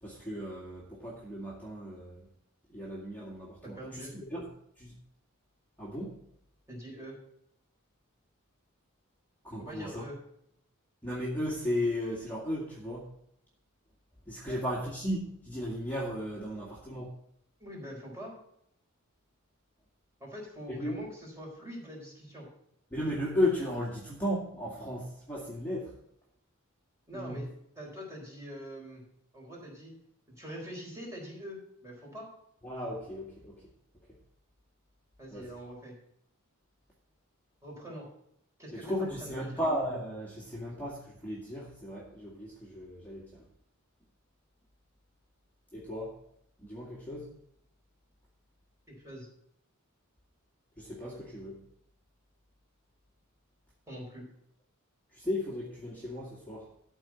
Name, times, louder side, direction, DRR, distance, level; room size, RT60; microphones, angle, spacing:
voice 1, 0.0-2.3 2.7-4.4 4.8-4.9 5.8-6.2 9.4-10.0 11.0-13.1 14.3-17.1 20.7-21.0 22.9-26.0 27.1-27.4 32.6-33.5 35.3-35.5 38.7-43.4 45.7-46.2 46.6-47.3 50.8-51.6 55.1-56.7, left 1 dB, 10° left, -5 dB, 2.1 m, -35 dB
voice 2, 3.6-4.1 6.7-7.2 9.6-10.2 14.4-14.6 16.5-16.7 17.6-18.3 20.2-22.5 27.1-29.0 29.3-29.9 30.4-32.3 35.2-36.0 37.6-38.1 38.6-39.6 48.9-49.3 53.9-54.2, equal, 15° right, -3 dB, 4.2 m, -44 dB
13.0 x 4.6 x 7.1 m, 0.72 s
head